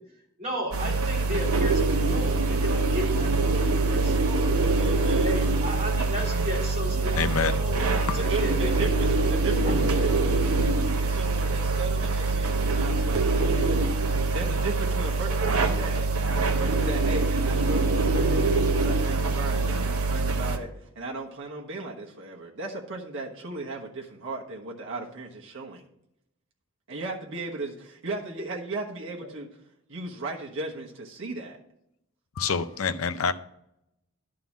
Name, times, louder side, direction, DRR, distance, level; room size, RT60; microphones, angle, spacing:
voice 1, 0.4-4.5 5.1-8.9 9.6-9.7, equal, 30° right, 2.9 m, -34 dB
sound 1, 0.7-20.6, right 3 dB, 80° right, 1.0 m, -24 dB
voice 2, 4.7-5.7 8.2-10.6 11.0-13.9 14.3-16.1 16.4-18.5 18.8-20.7 20.9-25.9 26.9-29.5 29.9-31.6, right 3 dB, 60° right, 1.2 m, -36 dB
voice 3, 7.2-7.5 8.1-8.2 32.4-33.3, left 5 dB, 70° left, 0.6 m, -26 dB
11.0 x 3.8 x 7.2 m
head